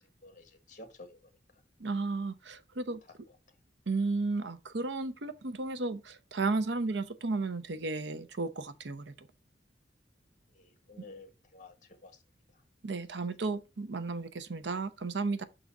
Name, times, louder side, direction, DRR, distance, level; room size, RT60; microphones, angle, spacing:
voice 1, 0.2-1.3 3.3-3.4 10.5-12.2 12.5-12.6 13.1-13.4, left 2 dB, 45° left, 1.4 m, -52 dB
voice 2, 1.8-3.0 3.9-9.1 12.8-15.4, right 3 dB, 90° right, 0.7 m, -33 dB
6.3 x 3.9 x 5.8 m
head